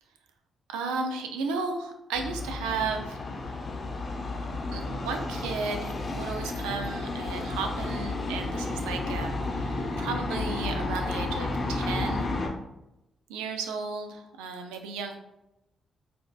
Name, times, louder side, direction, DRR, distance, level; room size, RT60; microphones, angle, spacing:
voice 1, 0.7-3.2 4.7-12.3 13.3-15.2, right 4 dB, 85° right, 4 dB, 0.4 m, -34 dB
sound 1, 2.1-12.5, left 2 dB, 45° left, 0.7 m, -32 dB
4.1 x 2.7 x 2.4 m, 0.90 s
hypercardioid pair, 45°, 0 cm